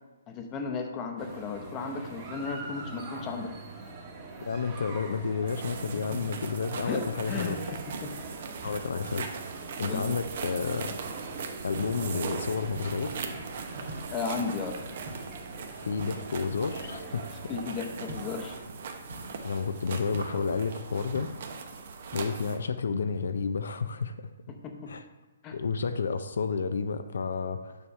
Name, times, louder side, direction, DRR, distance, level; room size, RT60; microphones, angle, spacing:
voice 1, 0.3-3.5 6.0-6.2 6.9-8.2 9.8-10.1 14.1-14.8 17.5-18.6 24.5-25.0 25.4-25.6, left 5 dB, 25° left, 4 dB, 0.8 m, -35 dB
sound 1, 1.2-18.6, right 3 dB, 25° right, 1.2 m, -44 dB
voice 2, 4.4-7.8 8.6-9.3 9.6-11.0 11.6-13.1 15.8-17.3 19.4-21.3 22.1-24.3 24.9-25.0 25.5-27.8, left 5 dB, 75° left, 9 dB, 0.4 m, -31 dB
sound 2, 5.5-22.6, right 5 dB, 55° right, 0.9 m, -40 dB
sound 3, 11.7-12.2 12.7-13.3 13.9-14.5 15.0-15.4 16.0-16.5 18.1-18.6 19.1-19.6 20.1-20.6 21.1-21.6 22.1-22.6, right 1 dB, 80° right, 2.3 m, -44 dB
7.0 x 3.5 x 5.4 m, 1.2 s
hypercardioid pair, 150°, 0 cm